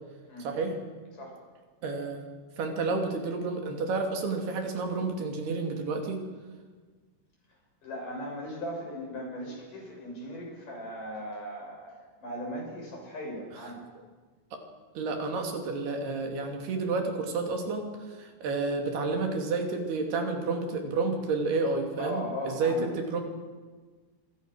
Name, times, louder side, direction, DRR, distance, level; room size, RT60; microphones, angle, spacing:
voice 1, 0.4-0.8 1.8-2.2 2.6-6.2 14.5-14.6 15.0-23.2, right 3 dB, 75° right, 3 dB, 4.7 m, -30 dB
voice 2, 7.8-13.9 22.0-22.8, equal, 50° left, 0 dB, 8.2 m, -38 dB
26.0 x 25.5 x 6.4 m, 1.4 s
omnidirectional pair, 4.7 m